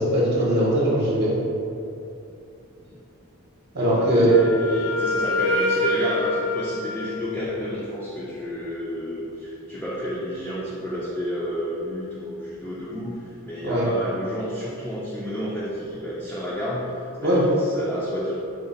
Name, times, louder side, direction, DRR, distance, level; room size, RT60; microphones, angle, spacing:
voice 1, 0.0-1.4 3.7-4.4 13.6-13.9 17.2-17.4, right 1 dB, 50° right, -7 dB, 0.8 m, -20 dB
voice 2, 3.8-18.3, equal, 5° left, -9 dB, 0.4 m, -31 dB
Wind instrument woodwind instrument, 3.9-7.8, left 2 dB, 85° left, 0.6 m, -26 dB
4.9 x 2.1 x 3.9 m, 2.7 s
head